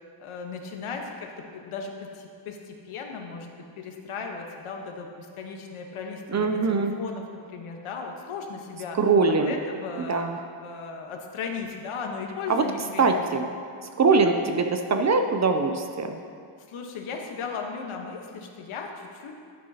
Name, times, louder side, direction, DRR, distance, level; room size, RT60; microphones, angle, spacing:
voice 1, 0.2-9.0 9.3-10.3 10.6-13.2 16.7-19.3, left 5 dB, 80° left, 2 dB, 1.1 m, -36 dB
voice 2, 6.3-6.9 8.9-9.5 10.1-10.4 12.5-12.7 13.0-13.4 14.0-16.2, right 4 dB, 35° right, 5 dB, 0.4 m, -22 dB
11.0 x 9.4 x 2.8 m, 2.3 s
wide cardioid pair, 175°, 49 cm